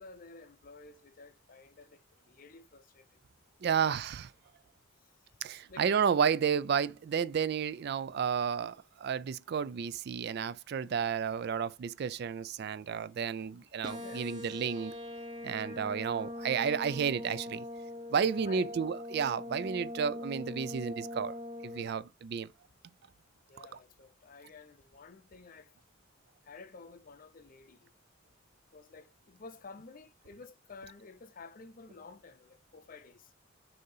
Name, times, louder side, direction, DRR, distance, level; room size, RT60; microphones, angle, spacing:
voice 1, 0.0-3.2 5.7-5.9 13.9-14.8 18.4-18.8 23.5-25.7 26.4-27.9 28.7-33.3, left 4 dB, 45° left, 0.6 m, -52 dB
voice 2, 3.6-4.3 5.4-14.9 15.4-17.6 18.1-21.4 21.6-22.5, right 7 dB, 50° right, 0.3 m, -32 dB
sound 1, 13.8-21.8, left 1 dB, 20° right, 0.8 m, -42 dB
6.5 x 2.8 x 5.4 m
head